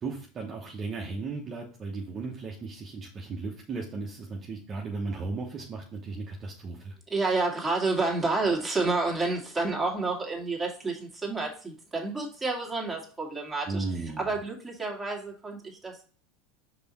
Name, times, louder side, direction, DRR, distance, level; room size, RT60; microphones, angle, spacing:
voice 1, 0.0-6.9 13.7-14.3, right 3 dB, 35° right, -1 dB, 1.1 m, -35 dB
voice 2, 7.1-13.9 14.2-16.0, right 3 dB, 10° right, -3 dB, 2.1 m, -29 dB
5.3 x 4.1 x 4.3 m, 0.41 s
hypercardioid pair, 90°, 0 cm